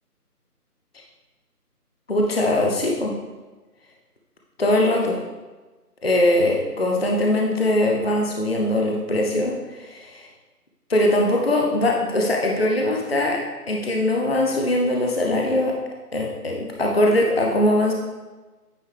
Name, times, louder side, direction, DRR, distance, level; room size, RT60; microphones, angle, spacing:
voice 1, 2.1-3.1 4.6-5.2 6.0-10.3 10.9-13.4 13.7-15.7 16.1-17.9, left 1 dB, 40° left, 0 dB, 0.8 m, -21 dB
9.4 x 5.0 x 3.4 m, 1.3 s
figure-of-eight pair, 170°, 47 cm